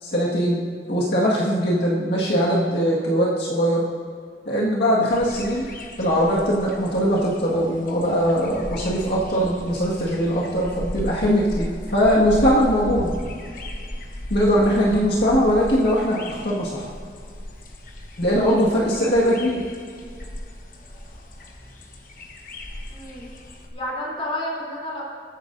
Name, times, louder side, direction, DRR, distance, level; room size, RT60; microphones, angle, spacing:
voice 1, 0.0-0.6 0.9-3.8 4.5-5.7 6.0-13.1 14.3-16.9 18.2-19.6, equal, 70° left, -6 dB, 1.8 m, -21 dB
sound 1, 5.1-23.7, left 1 dB, 50° left, 1.1 m, -36 dB
voice 2, 22.9-23.3 23.7-25.0, left 1 dB, 35° left, -5 dB, 3.3 m, -30 dB
20.0 x 9.4 x 2.7 m, 2.2 s
head